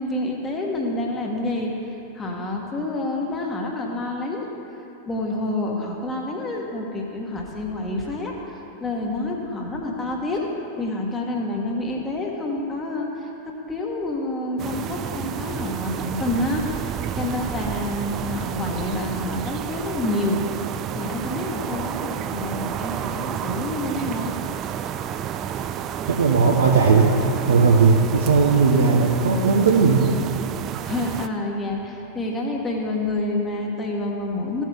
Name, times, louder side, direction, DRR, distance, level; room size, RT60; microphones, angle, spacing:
voice 1, 0.0-4.5 5.1-10.5 10.8-13.3 13.7-20.4 20.9-24.3 30.9-34.6, left 2 dB, 20° left, -1 dB, 1.4 m, -28 dB
sound 1, 14.6-31.3, right 9 dB, 35° right, 0.4 m, -30 dB
voice 2, 26.1-27.1 27.5-30.0, right 4 dB, 70° right, 0 dB, 0.8 m, -17 dB
15.0 x 7.5 x 3.4 m, 3.0 s
figure-of-eight pair, 90°, 0 cm